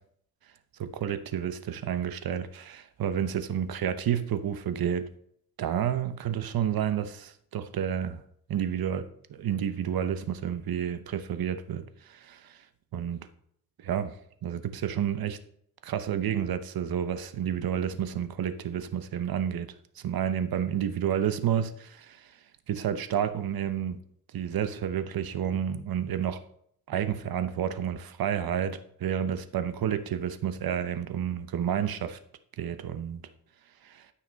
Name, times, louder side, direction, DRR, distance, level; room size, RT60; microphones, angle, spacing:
voice 1, 0.8-5.1 5.6-8.2 8.5-12.6 12.9-13.3 13.8-14.1 14.4-15.4 15.8-22.3 22.7-24.0 24.3-26.4 26.9-32.2 32.6-33.2 33.8-34.0, right 9 dB, 75° right, 0.9 m, -30 dB
13.0 x 5.8 x 4.0 m
cardioid pair, 110°, 36 cm